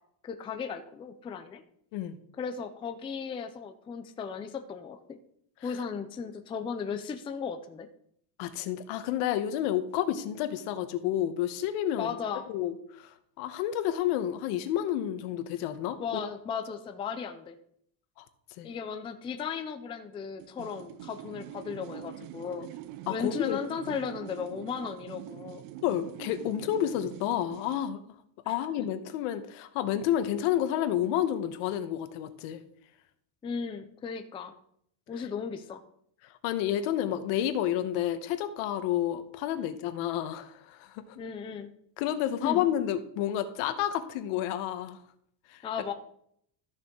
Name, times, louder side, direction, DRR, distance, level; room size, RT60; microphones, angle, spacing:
voice 1, 0.2-1.6 2.4-5.2 5.6-7.9 12.0-12.5 16.0-17.6 18.6-22.7 23.1-25.6 28.5-28.9 33.4-34.5 35.1-35.8 41.2-41.7 42.4-42.6 45.6-45.9, left 6 dB, 15° left, 7 dB, 0.3 m, -36 dB
voice 2, 8.4-12.1 12.5-16.2 18.6-18.7 23.1-23.6 25.8-28.0 28.5-32.6 36.4-41.2 42.0-45.0 45.5-45.6, left 11 dB, 90° left, 10 dB, 1.2 m, -30 dB
sound 1, 20.4-27.9, right 14 dB, 65° right, 0.7 m, -44 dB
13.5 x 6.6 x 3.7 m, 0.69 s
cardioid pair, 160°, 49 cm